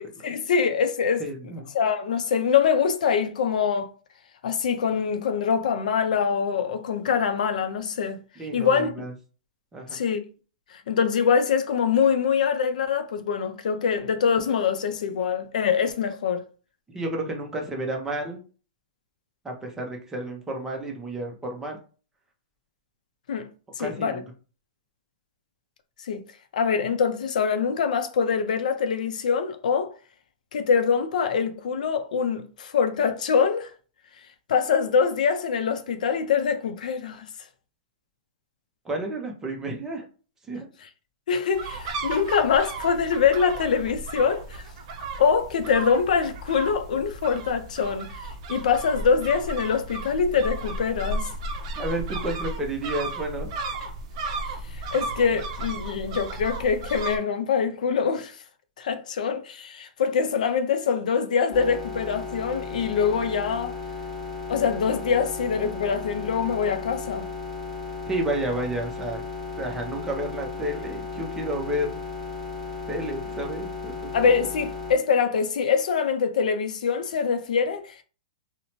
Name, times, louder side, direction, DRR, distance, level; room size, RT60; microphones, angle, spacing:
voice 1, 0.0-3.9 4.4-8.2 8.5-8.9 9.9-10.2 10.7-16.4 23.3-23.5 23.8-24.2 26.0-26.2 26.5-29.9 30.5-33.7 34.5-37.2 41.3-44.6 45.2-48.2 48.5-51.3 54.7-58.4 58.8-63.7 64.5-67.3 74.1-78.0, left 6 dB, 75° left, 0.5 m, -24 dB
voice 2, 1.2-1.7 8.4-9.1 9.7-10.0 16.9-18.4 19.4-21.8 23.8-24.2 38.8-40.0 40.5-40.7 51.7-53.5 68.1-69.2 69.6-72.0 72.9-74.1, right 1 dB, 10° right, 0.6 m, -31 dB
sound 1, 41.5-57.2, right 2 dB, 50° right, 0.6 m, -34 dB
sound 2, 61.5-74.9, left 4 dB, 15° left, 1.3 m, -35 dB
2.7 x 2.1 x 2.9 m
hypercardioid pair, 150°, 4 cm